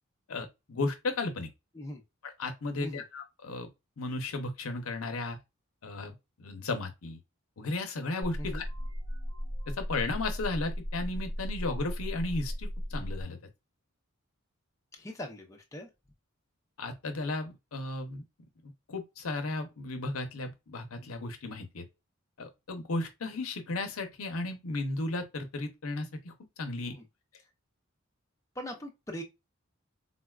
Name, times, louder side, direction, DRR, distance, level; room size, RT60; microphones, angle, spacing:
voice 1, 0.3-1.5 2.4-3.7 4.0-5.4 5.8-7.2 7.6-8.7 9.7-13.4 16.8-18.2 18.9-21.8 22.4-27.0, left 2 dB, 85° left, 0.7 m, -35 dB
sound 1, 8.2-13.2, equal, 85° right, 0.8 m, -36 dB
voice 2, 14.9-15.9 26.8-27.0 28.6-29.2, equal, 15° left, 0.5 m, -40 dB
3.9 x 2.2 x 2.3 m
head